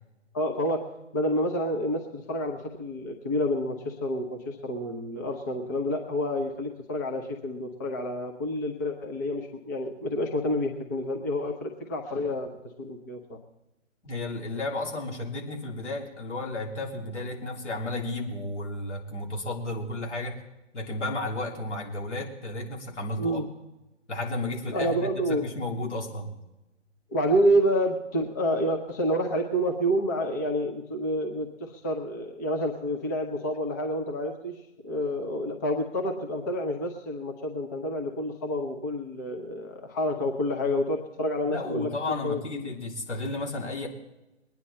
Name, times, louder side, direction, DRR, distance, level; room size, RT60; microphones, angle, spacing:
voice 1, 0.3-0.8 1.1-12.5 12.8-13.4 23.2-23.5 24.7-25.5 27.1-34.6 34.8-42.7, equal, 15° left, 1 dB, 0.6 m, -28 dB
voice 2, 14.0-20.4 20.7-23.4 24.1-26.3 41.5-43.9, left 2 dB, 65° left, 0 dB, 3.2 m, -33 dB
21.0 x 9.7 x 4.3 m, 0.98 s
figure-of-eight pair, 145°, 37 cm